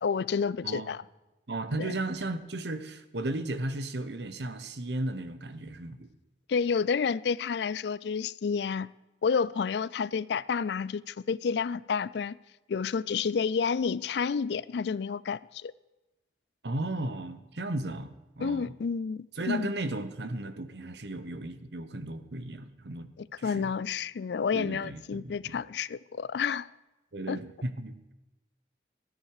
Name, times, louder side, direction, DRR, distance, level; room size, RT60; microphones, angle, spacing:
voice 1, 0.0-1.0 1.8-1.9 6.5-8.9 9.2-12.4 12.7-15.7 18.4-19.7 23.2-26.7 27.3-27.4, left 6 dB, 70° left, 0.4 m, -30 dB
voice 2, 0.6-1.0 1.5-6.1 16.6-18.7 19.4-23.1 23.4-23.7 24.5-25.6 27.1-28.1, right 2 dB, 70° right, 1.0 m, -35 dB
13.5 x 10.0 x 4.9 m
head